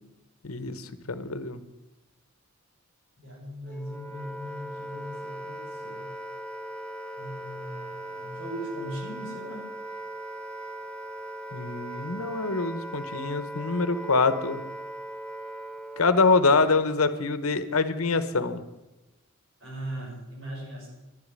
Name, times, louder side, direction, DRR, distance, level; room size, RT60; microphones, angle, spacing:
voice 1, 0.4-1.6 11.5-14.6 16.0-18.6, left 4 dB, 80° left, 11 dB, 1.1 m, -25 dB
voice 2, 3.2-6.1 7.2-9.7 19.6-20.9, equal, 60° right, -3 dB, 6.9 m, -39 dB
Wind instrument woodwind instrument, 3.7-16.3, right 1 dB, 5° left, 0.6 m, -39 dB
12.0 x 8.5 x 9.9 m, 1.0 s
head